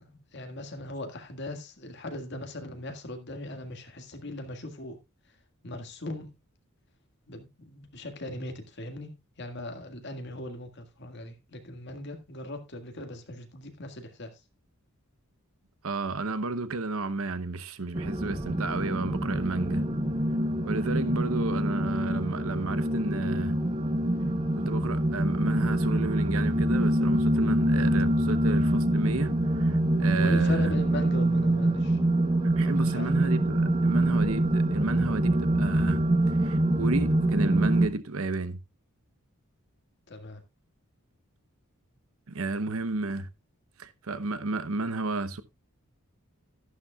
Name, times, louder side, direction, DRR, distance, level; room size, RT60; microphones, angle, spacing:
voice 1, 0.1-5.0 5.6-6.4 7.3-14.3 21.0-21.2 30.2-32.0 32.8-33.1 40.1-40.4, left 1 dB, 50° left, 1.9 m, -39 dB
voice 2, 15.8-19.8 20.7-23.5 24.6-30.7 32.4-36.0 36.4-38.6 42.3-43.3 43.8-45.4, right 3 dB, 75° right, 0.8 m, -32 dB
sound 1, 17.9-37.9, right 1 dB, 25° right, 1.0 m, -25 dB
13.0 x 11.0 x 2.3 m
head